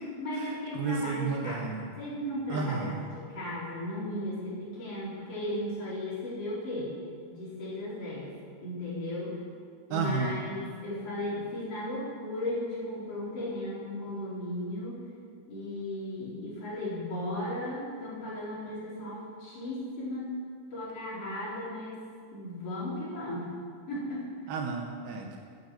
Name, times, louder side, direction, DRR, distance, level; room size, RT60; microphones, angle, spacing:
voice 1, 0.2-1.7 2.0-6.9 7.3-8.3 8.6-9.4 9.9-15.0 15.5-20.3 20.7-22.0 22.3-23.5 23.9-24.3, left 1 dB, 35° left, -8 dB, 4.7 m, -36 dB
voice 2, 0.7-1.8 2.5-2.9 9.9-10.4 24.5-25.4, right 4 dB, 75° right, 2 dB, 2.5 m, -32 dB
9.9 x 9.5 x 7.8 m, 2.1 s
omnidirectional pair, 5.0 m